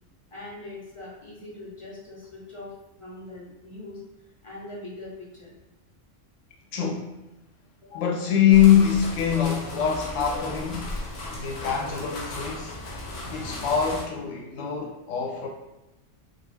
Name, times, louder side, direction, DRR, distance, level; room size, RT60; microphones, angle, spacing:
voice 1, 0.3-2.7 3.0-4.0 4.4-5.5 7.8-8.0, left 2 dB, 35° left, 0.5 m, -41 dB
voice 2, 6.7-7.1 7.9-11.0 11.3-12.8 13.3-15.5, left 9 dB, 90° left, 0.9 m, -23 dB
sound 1, 8.5-14.0, left 1 dB, 60° left, 0.8 m, -35 dB
2.4 x 2.3 x 3.2 m
omnidirectional pair, 1.3 m